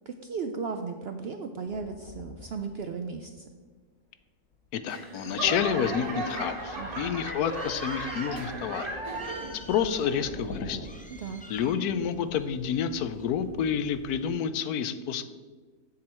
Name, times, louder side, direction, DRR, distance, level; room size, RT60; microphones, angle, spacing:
voice 1, 0.1-3.5 6.7-7.1 11.1-11.4, right 5 dB, 70° right, 6 dB, 0.6 m, -36 dB
sound 1, 1.7-3.5 4.5-4.8 7.5-10.8, left 3 dB, 65° left, 1.4 m, -45 dB
voice 2, 4.7-8.9 9.2-9.4 9.7-10.8 11.5-15.2, left 8 dB, 85° left, 12 dB, 1.1 m, -29 dB
Laughter / Clapping / Crowd, 4.9-9.7 10.0-10.5 11.1-11.2, right 2 dB, 35° right, 1.4 m, -36 dB
Bird, 5.3-14.3, left 2 dB, 10° left, 0.4 m, -49 dB
7.9 x 7.5 x 4.3 m, 1.4 s
omnidirectional pair, 1.6 m